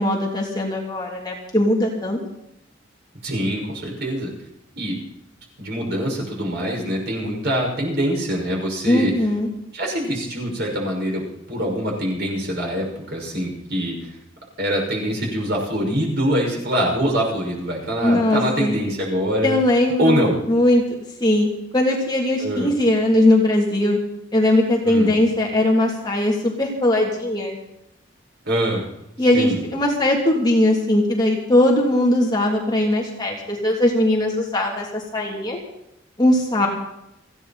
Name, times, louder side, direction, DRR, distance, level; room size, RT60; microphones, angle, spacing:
voice 1, 0.0-2.2 8.9-9.5 18.0-18.8 19.4-20.8 21.2-21.5 21.7-24.0 24.3-27.6 29.2-35.6 36.2-36.7, left 1 dB, 20° left, -2 dB, 3.1 m, -19 dB
voice 2, 3.2-4.3 4.8-5.0 5.6-9.1 9.7-14.2 14.6-19.6 20.0-20.4 22.4-22.7 24.8-25.2 28.4-28.9 29.3-29.6, equal, 55° right, -1 dB, 6.1 m, -24 dB
30.0 x 10.5 x 4.3 m, 0.83 s
head